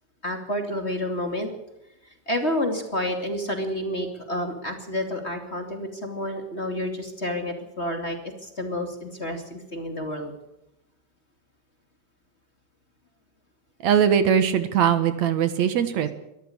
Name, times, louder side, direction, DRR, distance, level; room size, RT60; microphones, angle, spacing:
voice 1, 0.2-1.5 2.3-10.3, left 1 dB, 20° left, 5 dB, 2.6 m, -29 dB
voice 2, 13.8-16.1, right 8 dB, 70° right, 11 dB, 2.5 m, -21 dB
23.0 x 13.5 x 8.7 m, 0.87 s
omnidirectional pair, 3.4 m